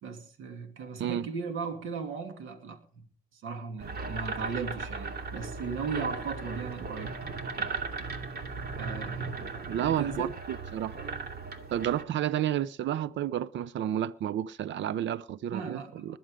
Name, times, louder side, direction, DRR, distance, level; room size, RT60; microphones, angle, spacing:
voice 1, 0.0-3.0 3.3-7.2 7.6-7.7 8.7-9.4 9.8-10.3 15.5-16.2, right 5 dB, 85° right, 2.8 m, -37 dB
sound 1, 3.8-12.0, right 4 dB, 50° right, 2.6 m, -37 dB
voice 2, 9.7-10.9 11.7-16.2, right 11 dB, 70° right, 0.7 m, -31 dB
21.5 x 7.9 x 5.1 m
cardioid pair, 90°, 20 cm